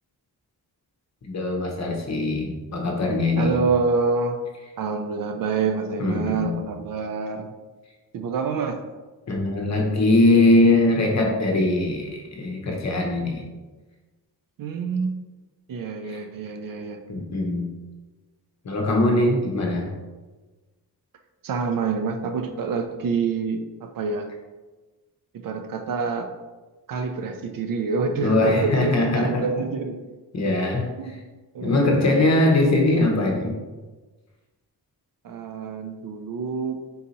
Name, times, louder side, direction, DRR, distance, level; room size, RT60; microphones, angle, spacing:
voice 1, 1.2-3.6 6.0-6.6 9.3-13.4 16.0-16.2 17.1-17.6 18.6-19.9 28.2-29.6 30.3-31.2 31.6-33.5, left 2 dB, 45° left, 1 dB, 0.9 m, -21 dB
voice 2, 3.4-4.4 4.8-7.5 8.1-8.8 14.6-15.2 15.7-17.0 21.4-24.3 25.3-26.3 26.9-30.0 31.0-31.1 31.5-32.3 35.2-36.8, right 4 dB, 60° right, 6 dB, 0.5 m, -27 dB
3.9 x 2.7 x 4.0 m, 1.2 s
wide cardioid pair, 155°, 39 cm